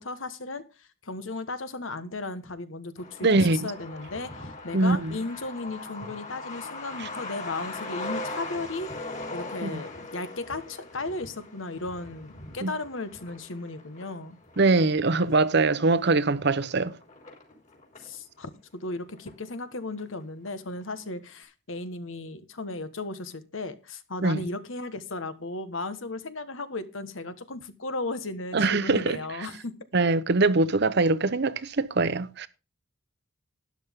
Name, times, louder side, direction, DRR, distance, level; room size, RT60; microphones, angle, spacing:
voice 1, 0.0-8.9 9.3-14.4 18.0-29.7, left 2 dB, 75° left, 1.3 m, -35 dB
Truck, 3.0-18.2 18.5-18.6 18.8-19.7 20.0-20.1 20.5-20.8, left 2 dB, 40° left, 3.5 m, -40 dB
voice 2, 3.2-3.7 4.7-5.2 7.0-7.1 9.6-9.8 12.6-12.7 14.6-16.9 24.2-24.4 28.5-29.2 29.9-32.5, right 3 dB, 60° right, 0.8 m, -23 dB
12.5 x 10.5 x 3.6 m
head